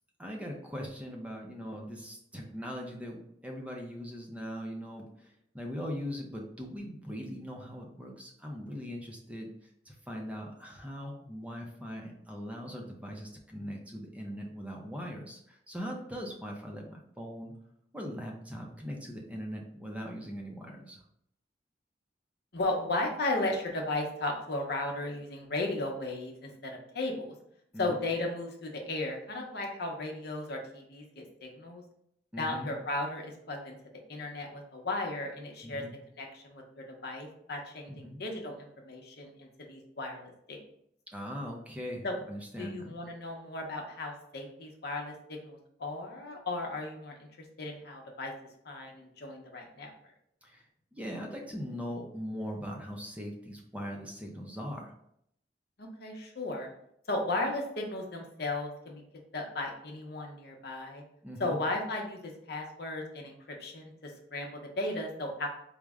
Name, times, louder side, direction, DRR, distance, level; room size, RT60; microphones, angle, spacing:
voice 1, 0.2-9.5 9.9-17.5 17.9-21.0 27.7-28.0 32.3-32.7 35.6-35.9 37.9-38.2 41.1-42.9 50.4-50.6 50.9-54.9 61.2-61.6, equal, 10° right, 0 dB, 0.5 m, -40 dB
voice 2, 22.5-27.3 27.8-31.8 32.4-33.8 34.1-35.8 36.1-40.6 42.0-42.2 42.6-47.3 47.6-48.3 48.6-49.9 55.8-56.7 57.1-59.0 59.3-61.0 61.4-65.5, left 2 dB, 65° left, 1 dB, 0.8 m, -35 dB
4.7 x 2.1 x 3.5 m, 0.72 s
head